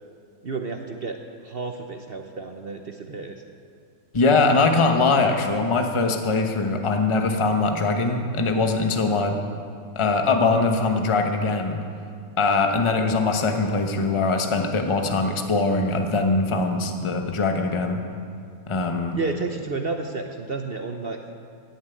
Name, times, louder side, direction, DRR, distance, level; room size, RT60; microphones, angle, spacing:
voice 1, 0.4-3.4 19.1-21.3, right 3 dB, 50° right, 4 dB, 0.7 m, -31 dB
voice 2, 4.1-9.4 9.9-11.8 12.4-18.0 18.7-19.2, left 3 dB, 20° left, 4 dB, 0.8 m, -22 dB
15.5 x 7.4 x 9.2 m, 2.3 s
omnidirectional pair, 2.0 m